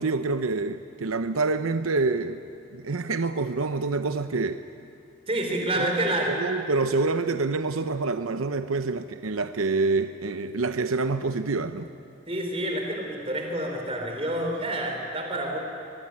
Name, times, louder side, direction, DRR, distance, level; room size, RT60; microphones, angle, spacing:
voice 1, 0.0-2.4 2.7-4.6 5.7-5.9 6.3-11.9, right 3 dB, 85° right, 9 dB, 0.8 m, -27 dB
voice 2, 5.3-6.3 12.3-15.6, right 1 dB, 30° right, 2 dB, 4.3 m, -28 dB
24.5 x 21.5 x 9.8 m, 2.5 s
head